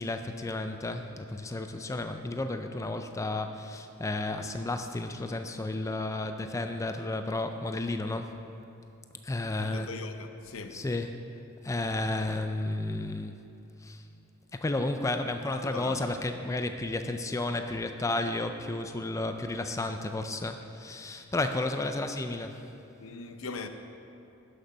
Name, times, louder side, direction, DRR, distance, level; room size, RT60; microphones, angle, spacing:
voice 1, 0.0-8.3 9.2-9.9 10.7-11.2 11.6-13.4 13.8-14.0 14.5-22.6, left 2 dB, 15° left, 0.3 m, -32 dB
voice 2, 9.6-10.9 15.6-16.0 23.0-23.7, left 4 dB, 70° left, 0.7 m, -40 dB
11.0 x 6.7 x 5.6 m
head